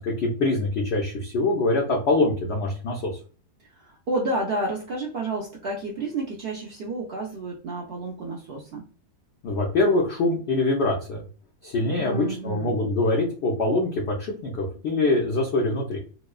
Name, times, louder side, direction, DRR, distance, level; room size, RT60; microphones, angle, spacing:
voice 1, 0.0-3.2 9.4-11.2 11.6-16.0, left 2 dB, 65° left, -1 dB, 0.6 m, -24 dB
voice 2, 3.6-8.9 12.0-12.8, right 2 dB, 90° right, -2 dB, 0.5 m, -30 dB
3.0 x 2.0 x 2.2 m, 0.39 s
omnidirectional pair, 1.6 m